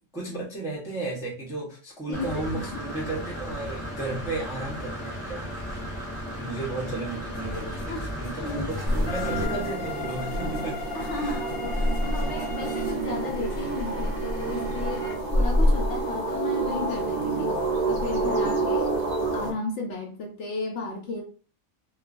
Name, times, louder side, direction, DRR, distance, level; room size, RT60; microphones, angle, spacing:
voice 1, 0.1-5.8 6.4-7.9 8.2-10.8 11.1-11.4, right 2 dB, 5° right, -4 dB, 0.5 m, -34 dB
voice 2, 2.1-2.8 7.9-8.0 8.4-8.7 10.3-10.6 10.9-17.6 17.9-19.0 19.3-21.2, left 3 dB, 65° left, 1 dB, 0.9 m, -34 dB
Engine / Mechanisms, 2.1-9.4, equal, 30° left, 0.8 m, -35 dB
sound 1, 7.3-15.1, left 3 dB, 80° left, 1.1 m, -38 dB
sound 2, 8.8-19.5, right 1 dB, 40° right, 0.8 m, -27 dB
3.0 x 2.1 x 2.4 m, 0.38 s
omnidirectional pair, 1.5 m